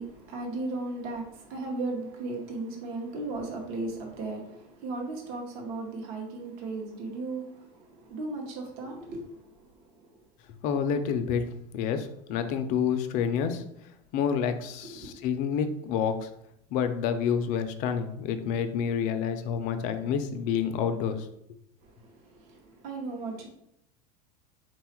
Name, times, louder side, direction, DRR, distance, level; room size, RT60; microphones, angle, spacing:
voice 1, 0.0-10.1 14.9-15.1 21.8-23.5, right 2 dB, 45° right, 0.8 m, -36 dB
voice 2, 10.6-11.4 11.7-13.6 14.1-16.3 16.7-21.3, left 7 dB, 40° left, 0.4 m, -28 dB
4.0 x 2.3 x 4.3 m
supercardioid pair, 160°, 21 cm